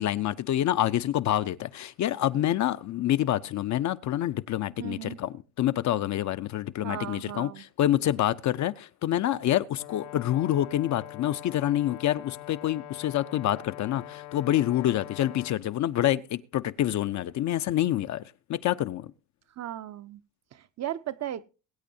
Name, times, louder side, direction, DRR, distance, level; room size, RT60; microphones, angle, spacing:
voice 1, 0.0-18.2 18.5-19.1, left 12 dB, 40° left, 0.6 m, -27 dB
voice 2, 4.8-5.2 6.8-7.6 19.6-20.2 20.5-21.4, right 11 dB, 40° right, 0.6 m, -36 dB
Brass instrument, 9.7-15.6, left 15 dB, 75° left, 1.0 m, -44 dB
21.5 x 8.4 x 2.7 m
supercardioid pair, 105°, 44 cm